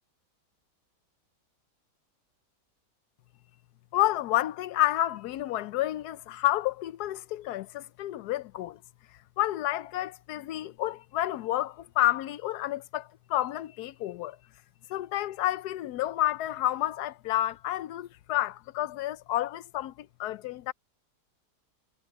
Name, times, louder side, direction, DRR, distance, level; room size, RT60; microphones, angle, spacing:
voice 1, 3.9-8.8 9.4-14.4 14.9-20.7, left 15 dB, 75° left, 1.1 m, -30 dB
omnidirectional pair, 1.8 m